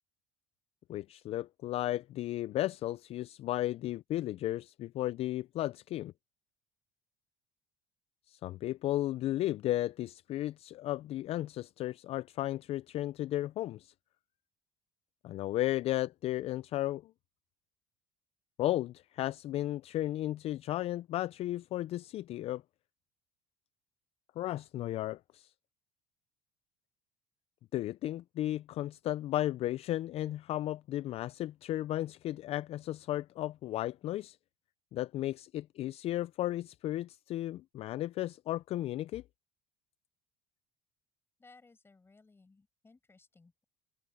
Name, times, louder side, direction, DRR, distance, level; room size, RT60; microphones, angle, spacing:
voice 1, 0.9-6.1 8.3-13.9 15.2-17.1 18.6-22.6 24.4-25.5 27.7-34.4 34.9-39.2, left 14 dB, 50° left, 0.4 m, -34 dB
voice 2, 41.4-43.6, left 3 dB, 15° left, 6.8 m, -61 dB
cardioid pair, 110°, 13 cm